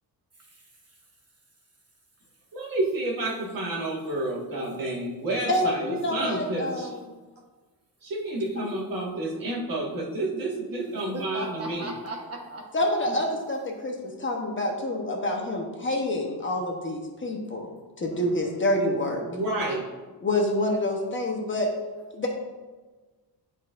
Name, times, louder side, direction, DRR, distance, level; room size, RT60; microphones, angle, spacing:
voice 1, 0.4-1.0 11.0-12.7 18.1-18.7 19.4-19.8, right 2 dB, 40° right, -1 dB, 1.0 m, -39 dB
voice 2, 2.5-6.9 8.0-11.9 19.2-19.9, right 1 dB, 60° right, -3 dB, 1.8 m, -30 dB
voice 3, 5.5-7.0 8.6-8.7 12.7-19.2 20.2-21.7 22.1-22.3, left 1 dB, 30° left, 1 dB, 1.0 m, -27 dB
11.5 x 4.1 x 2.5 m, 1.3 s
cardioid pair, 130°, 39 cm